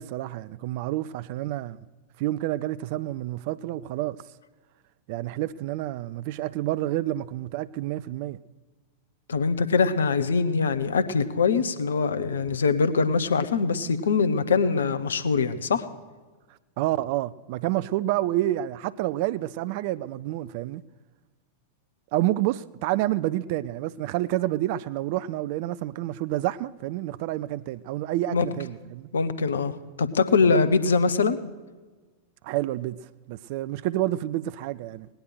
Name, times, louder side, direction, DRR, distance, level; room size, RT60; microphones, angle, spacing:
voice 1, 0.0-1.8 2.2-4.2 5.1-8.4 16.8-20.8 22.1-29.1 30.5-30.6 32.4-33.0 33.3-35.1, right 15 dB, 50° right, 0.4 m, -29 dB
voice 2, 9.3-15.9 28.3-28.4 29.1-31.4, left 5 dB, 70° left, 0.9 m, -23 dB
18.5 x 10.5 x 6.4 m
figure-of-eight pair, 90°, 0 cm